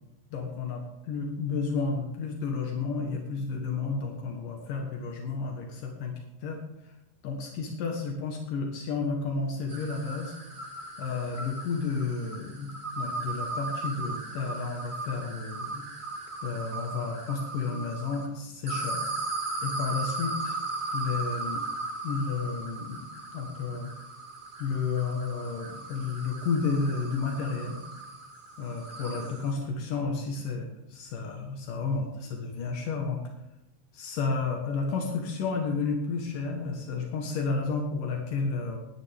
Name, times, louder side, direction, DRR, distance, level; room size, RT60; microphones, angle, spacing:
voice 1, 0.3-6.1 6.4-6.9 7.2-10.4 11.0-15.9 16.4-19.1 19.6-20.6 20.9-21.7 22.0-23.0 23.3-23.9 24.6-27.8 28.6-33.2 33.9-38.8, left 4 dB, 75° left, 2 dB, 3.1 m, -31 dB
sound 1, 9.7-18.3 18.7-29.5, right 3 dB, 25° right, 1.0 m, -37 dB
19.0 x 9.9 x 3.6 m, 0.92 s
omnidirectional pair, 3.8 m